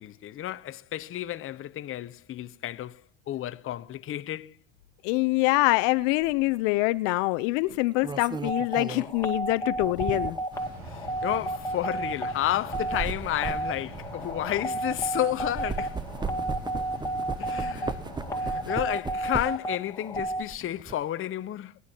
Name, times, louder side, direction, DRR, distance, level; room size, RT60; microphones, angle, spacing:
voice 1, 0.0-3.0 3.3-4.6 10.8-16.0 17.4-18.0 18.3-21.8, left 13 dB, 35° left, 0.7 m, -31 dB
voice 2, 5.0-10.4, left 22 dB, 65° left, 0.7 m, -25 dB
sound 1, 6.2-6.4 7.7-10.6 11.2-11.4 12.5-15.1 15.4-19.7 20.1-20.9, right 4 dB, 10° right, 0.6 m, -37 dB
sound 2, 8.5-20.4, right 1 dB, 10° left, 2.1 m, -32 dB
sound 3, 10.5-18.8, right 2 dB, 45° right, 3.8 m, -44 dB
21.5 x 11.0 x 2.9 m
supercardioid pair, 95°, 39 cm